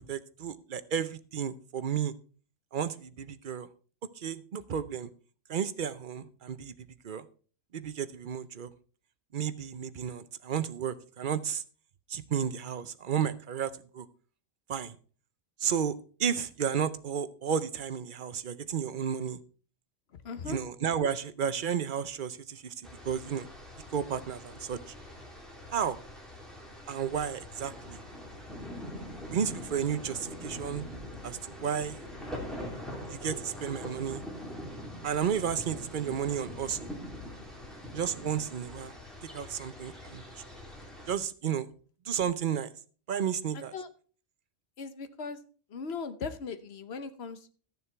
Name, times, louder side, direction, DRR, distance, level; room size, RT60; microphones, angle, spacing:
voice 1, 0.1-2.1 2.7-3.7 4.2-5.1 5.5-6.7 7.0-7.3 7.7-8.7 9.3-11.6 12.1-14.1 14.7-15.0 15.6-19.4 20.5-22.7 23.0-23.5 23.9-24.9 25.7-26.0 26.9-28.0 29.3-30.9 31.2-32.0 33.1-34.2 35.0-36.9 37.9-38.9 39.3-40.2 41.1-41.7 42.1-42.7 43.1-43.7, right 8 dB, 50° right, 13 dB, 0.8 m, -32 dB
voice 2, 20.2-20.6 43.5-43.9 44.8-45.4 45.7-47.5, left 5 dB, 60° left, 11 dB, 1.2 m, -38 dB
sound 1, 22.8-41.2, left 1 dB, ahead, 2.8 m, -43 dB
13.5 x 7.0 x 4.5 m, 0.41 s
omnidirectional pair, 1.3 m